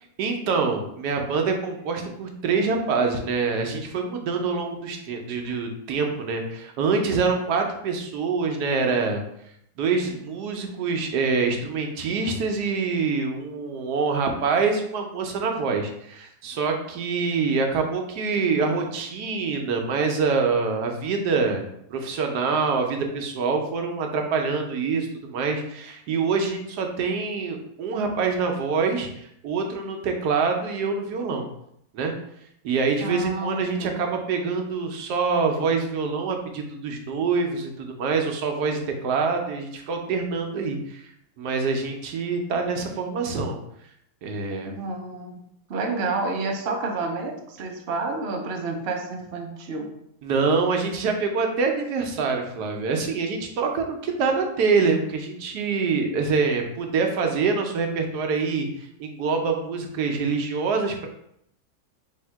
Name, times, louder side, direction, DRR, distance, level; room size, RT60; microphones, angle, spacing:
voice 1, 0.2-9.2 9.8-21.6 21.9-29.1 29.4-31.5 31.9-32.1 32.6-41.1 41.4-43.6 44.2-44.7 50.2-61.1, right 4 dB, 80° right, 3 dB, 1.2 m, -25 dB
voice 2, 33.0-34.0 44.6-45.4 45.7-49.9, right 3 dB, 55° right, 2 dB, 0.7 m, -29 dB
3.4 x 2.8 x 4.5 m, 0.74 s
omnidirectional pair, 1.7 m